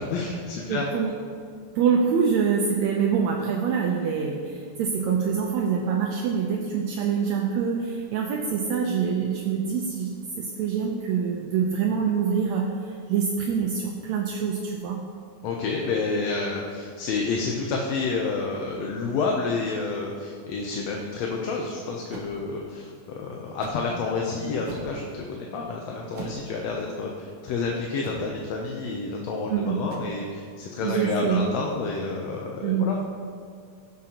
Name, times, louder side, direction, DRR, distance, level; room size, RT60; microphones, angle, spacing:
voice 1, 0.1-0.9 15.4-33.0, left 4 dB, 70° left, 0 dB, 1.8 m, -29 dB
voice 2, 0.7-1.2 1.8-15.0 29.5-29.8 30.8-31.4 32.6-32.9, right 6 dB, 75° right, 0 dB, 1.9 m, -25 dB
sound 1, 22.1-22.3 23.6-23.9 24.6-25.0 26.1-26.5 28.0-28.4 29.9-30.0, right 3 dB, 60° right, 1.5 m, -39 dB
15.5 x 7.5 x 2.9 m, 2.2 s
omnidirectional pair, 3.4 m